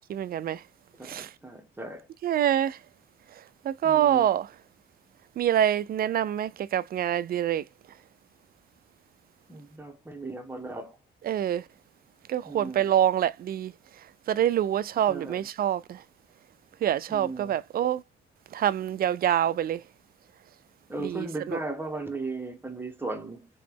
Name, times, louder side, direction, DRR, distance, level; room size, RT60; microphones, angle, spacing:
voice 1, 0.1-0.6 1.0-1.3 2.2-2.8 3.6-4.5 5.4-7.6 11.2-11.6 12.3-13.7 14.3-16.0 16.8-18.0 18.5-19.8 21.0-21.6, right 10 dB, 50° right, 0.4 m, -26 dB
voice 2, 1.0-2.1 3.8-4.3 9.5-11.0 12.5-12.9 15.1-15.5 17.1-17.6 20.9-23.5, right 2 dB, 10° right, 1.1 m, -36 dB
3.1 x 3.0 x 3.4 m
cardioid pair, 90°, 20 cm